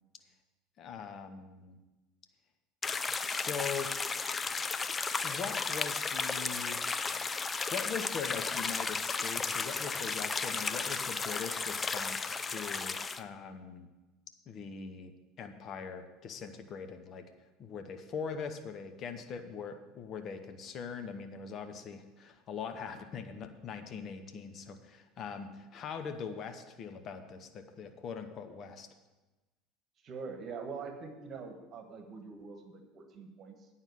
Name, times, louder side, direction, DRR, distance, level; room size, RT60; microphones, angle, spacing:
voice 1, 0.8-1.8 3.2-3.9 5.2-6.8 7.7-13.9 14.5-17.2 17.6-28.9, left 6 dB, 45° left, 8 dB, 0.8 m, -41 dB
sound 1, 2.8-13.2, left 4 dB, 25° left, 0.5 m, -34 dB
voice 2, 30.0-33.7, right 5 dB, 40° right, 5 dB, 1.4 m, -44 dB
9.1 x 5.7 x 8.0 m, 1.1 s
figure-of-eight pair, 70°, 0 cm